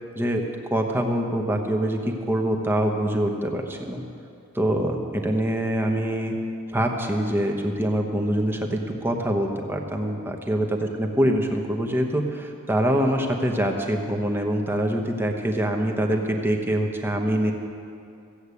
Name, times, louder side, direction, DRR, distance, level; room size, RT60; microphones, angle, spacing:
voice 1, 0.7-4.0 4.5-6.3 6.7-17.5, right 1 dB, 10° right, 2 dB, 1.0 m, -24 dB
15.0 x 8.0 x 8.4 m, 2.5 s
head